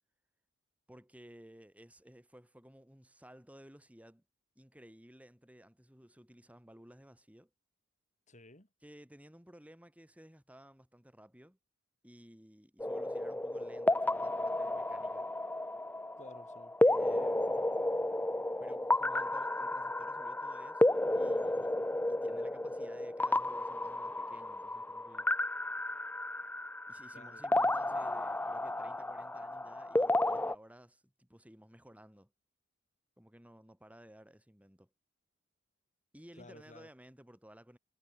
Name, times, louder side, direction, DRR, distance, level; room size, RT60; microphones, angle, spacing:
voice 1, 0.9-4.2 4.5-7.5 8.8-11.6 12.0-15.3 16.8-17.7 18.6-21.8 22.1-25.3 26.9-32.3 33.2-34.9 36.1-37.8, equal, 5° right, 4.8 m, -56 dB
voice 2, 8.3-8.7 16.2-16.7 27.1-27.7 36.4-36.9, left 2 dB, 35° left, 5.9 m, -55 dB
sound 1, 12.8-30.6, left 1 dB, 10° left, 0.6 m, -32 dB
head